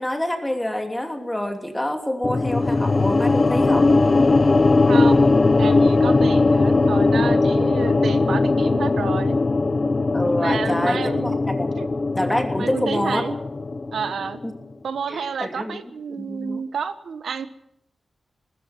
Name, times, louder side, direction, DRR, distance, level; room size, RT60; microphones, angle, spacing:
voice 1, 0.0-3.9 10.1-11.7 12.1-13.3 14.4-14.5 15.1-15.8 16.2-16.6, left 1 dB, 10° left, 4 dB, 2.9 m, -26 dB
sound 1, 2.2-14.5, left 3 dB, 35° left, 0.8 m, -19 dB
voice 2, 4.9-5.3 5.6-9.4 10.4-11.4 11.8-11.9 12.6-13.3 13.9-14.4 14.8-17.5, right 6 dB, 90° right, 11 dB, 1.3 m, -30 dB
20.0 x 14.5 x 9.5 m, 0.76 s
wide cardioid pair, 130°, 0 cm